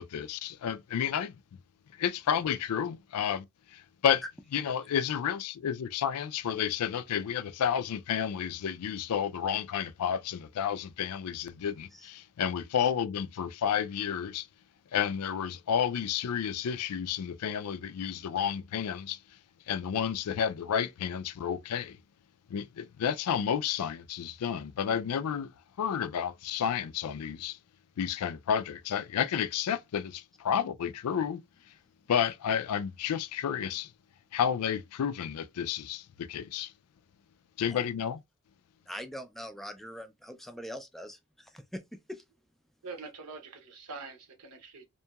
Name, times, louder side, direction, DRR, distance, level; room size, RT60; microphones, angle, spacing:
voice 1, 0.0-1.4 2.0-4.2 4.5-14.5 14.9-19.2 19.7-22.0 22.5-25.5 25.8-27.6 28.0-31.4 32.1-33.9 34.3-36.7 37.6-38.2, left 8 dB, 90° left, 0.4 m, -31 dB
voice 2, 38.9-42.2, equal, ahead, 0.3 m, -43 dB
voice 3, 42.8-44.8, right 4 dB, 75° right, 0.9 m, -44 dB
2.8 x 2.6 x 2.3 m
head